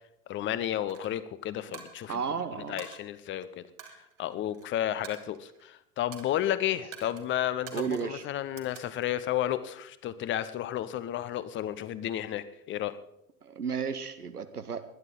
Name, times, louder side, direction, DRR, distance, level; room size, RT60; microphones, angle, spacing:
voice 1, 0.3-2.2 2.5-3.7 4.2-13.0, left 12 dB, 25° left, 14 dB, 0.7 m, -32 dB
Coin (dropping), 0.9-1.1 1.7-2.3 2.8-3.0 3.8-4.6 5.0-5.7 6.1-6.4 6.9-7.2 7.7-8.1 8.6-9.2, right 8 dB, 60° right, 2.0 m, -47 dB
voice 2, 2.1-2.8 7.7-8.3 13.4-14.8, right 6 dB, 85° right, 9 dB, 0.9 m, -33 dB
20.0 x 11.0 x 3.9 m, 0.81 s
figure-of-eight pair, 80°, 44 cm